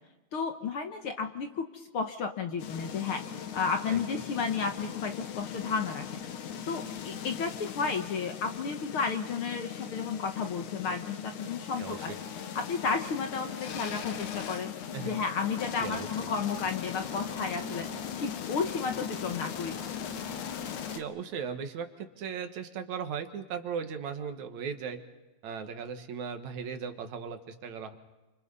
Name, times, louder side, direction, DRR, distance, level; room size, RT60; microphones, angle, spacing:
voice 1, 0.3-3.2 3.5-6.0 6.7-12.1 12.5-14.7 15.0-19.8, left 5 dB, 55° left, 5 dB, 1.8 m, -32 dB
sound 1, 2.6-21.0, left 7 dB, 85° left, 2.9 m, -39 dB
voice 2, 11.8-12.2 14.9-15.1 15.8-16.1 20.9-25.0 25.4-28.0, right 6 dB, 70° right, 7 dB, 2.8 m, -37 dB
29.0 x 25.5 x 5.5 m, 1.1 s
omnidirectional pair, 3.4 m